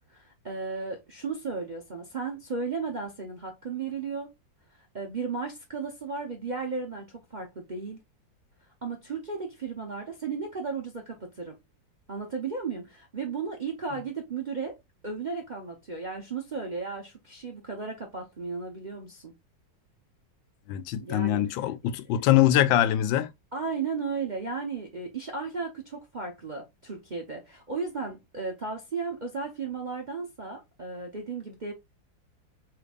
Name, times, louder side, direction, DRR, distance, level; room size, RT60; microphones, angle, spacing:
voice 1, 0.1-4.3 4.9-8.0 8.8-11.6 12.1-14.8 15.0-19.3 21.0-21.4 23.5-31.7, right 4 dB, 45° right, 0.6 m, -35 dB
voice 2, 20.7-23.3, left 12 dB, 90° left, 1.4 m, -23 dB
5.1 x 3.4 x 2.3 m
omnidirectional pair, 2.0 m